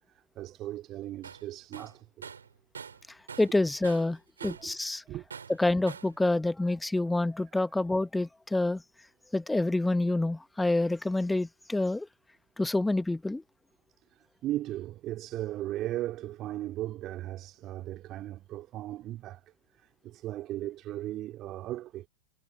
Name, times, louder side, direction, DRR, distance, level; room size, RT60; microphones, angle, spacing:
voice 1, 0.4-2.3 4.4-4.7 5.1-5.3 7.5-7.6 14.1-22.1, right 14 dB, 35° right, 3.8 m, -37 dB
Tools, 1.2-1.5 1.7-3.6 3.8-4.7 5.3-6.2, right 6 dB, 70° right, 4.4 m, -45 dB
voice 2, 3.4-5.0 5.6-8.8 9.3-12.1 12.6-13.4, left 2 dB, 5° left, 1.1 m, -27 dB
figure-of-eight pair, 90°, 0 cm